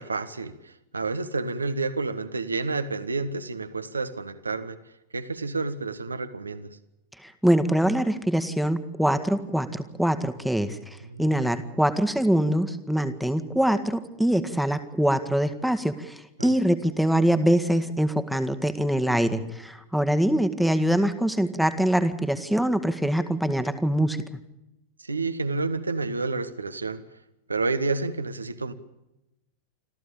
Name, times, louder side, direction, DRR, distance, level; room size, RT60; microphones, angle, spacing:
voice 1, 0.0-4.8 5.1-6.8 11.0-11.3 16.4-16.6 25.0-27.0 27.5-28.7, right 3 dB, 80° right, 1.5 m, -30 dB
voice 2, 7.2-10.8 11.2-24.2, right 1 dB, ahead, 1.8 m, -24 dB
26.5 x 14.5 x 8.7 m
figure-of-eight pair, 90°, 0 cm